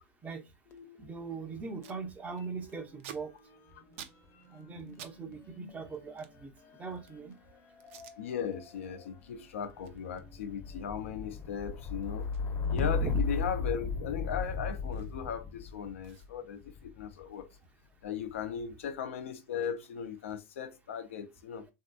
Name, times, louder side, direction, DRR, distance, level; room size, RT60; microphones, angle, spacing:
sound 1, 0.7-2.0 2.3-17.3 18.1-18.7, left 4 dB, 45° left, 0.7 m, -38 dB
voice 1, 1.0-3.3 4.5-6.5 6.8-7.4 13.0-13.2, right 4 dB, 20° right, 0.7 m, -40 dB
Packing tape duct tape, 1.8-2.0 2.3-5.2 5.4-7.3 7.8-8.2 8.6-8.9 9.2-15.4 15.7-15.8 16.0-18.4 18.7-20.6, right 9 dB, 75° right, 0.5 m, -55 dB
voice 2, 8.2-12.3 12.7-17.5 18.0-21.7, left 8 dB, 85° left, 0.5 m, -37 dB
3.2 x 2.7 x 2.3 m
hypercardioid pair, 100°, 7 cm